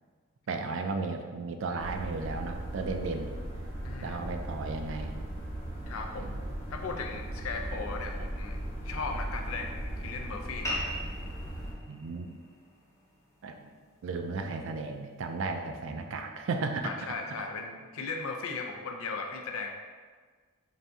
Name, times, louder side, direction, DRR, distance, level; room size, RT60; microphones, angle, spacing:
voice 1, 0.5-3.3 4.0-5.1 6.2-6.4 11.9-12.4 13.4-13.7 14.0-17.1, right 3 dB, 60° right, 5 dB, 0.3 m, -34 dB
sound 1, 1.8-11.7, right 1 dB, 55° left, 1.0 m, -38 dB
voice 2, 3.8-4.2 5.9-6.3 6.7-8.6 8.8-11.0 16.8-19.7, left 4 dB, 70° left, 3 dB, 0.5 m, -37 dB
sound 2, 10.6-15.7, equal, 15° left, 0.6 m, -42 dB
4.1 x 2.6 x 3.4 m, 1.5 s
head